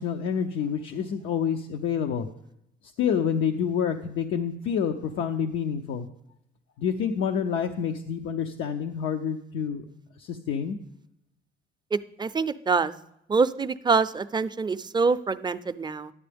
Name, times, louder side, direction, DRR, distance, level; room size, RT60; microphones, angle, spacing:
voice 1, 0.0-2.3 3.0-6.1 6.8-9.9 10.2-10.8, left 7 dB, 85° left, 4 dB, 0.6 m, -28 dB
voice 2, 11.9-12.9 13.3-16.1, right 4 dB, 20° right, 11 dB, 0.4 m, -25 dB
11.0 x 7.6 x 3.4 m, 0.80 s
cardioid pair, 90°, 20 cm